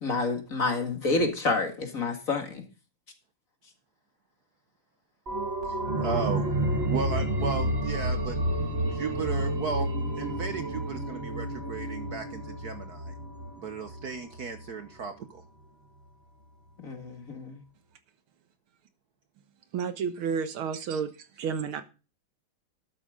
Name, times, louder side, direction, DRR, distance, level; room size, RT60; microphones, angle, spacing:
voice 1, 0.0-2.6 16.8-17.6, left 3 dB, 40° left, 6 dB, 2.2 m, -28 dB
sound 1, 5.3-14.6 15.0-15.1, right 1 dB, 30° right, 2.4 m, -30 dB
voice 2, 6.0-6.4 6.9-8.4 8.9-9.9 10.2-13.1 13.6-15.1, right 5 dB, 55° right, 9 dB, 1.3 m, -34 dB
voice 3, 19.7-21.1 21.4-21.8, right 6 dB, 70° right, 10 dB, 2.0 m, -30 dB
12.5 x 8.8 x 3.7 m, 0.32 s
omnidirectional pair, 2.4 m